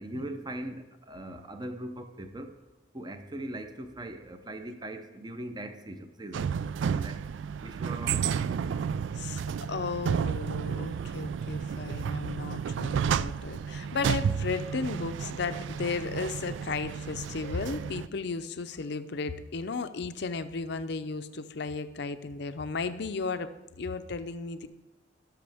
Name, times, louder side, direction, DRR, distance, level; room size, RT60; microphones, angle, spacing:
voice 1, 0.0-2.5 2.9-6.5 6.8-7.2 7.6-8.8, right 1 dB, 25° right, 7 dB, 0.6 m, -40 dB
sound 1, 6.3-18.1, right 7 dB, 75° right, 0.3 m, -32 dB
voice 2, 9.1-23.5 23.8-24.7, left 4 dB, 65° left, 11 dB, 0.6 m, -34 dB
17.5 x 6.2 x 3.5 m, 0.99 s
head